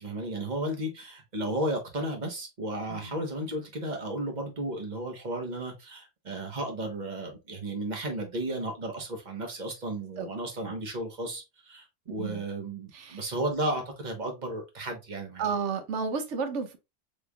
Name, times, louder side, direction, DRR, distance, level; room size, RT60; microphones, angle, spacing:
voice 1, 0.0-15.5, right 1 dB, 40° right, 1.2 m, -34 dB
voice 2, 15.4-16.8, right 5 dB, 70° right, 1.1 m, -32 dB
5.0 x 3.3 x 2.3 m
omnidirectional pair, 1.3 m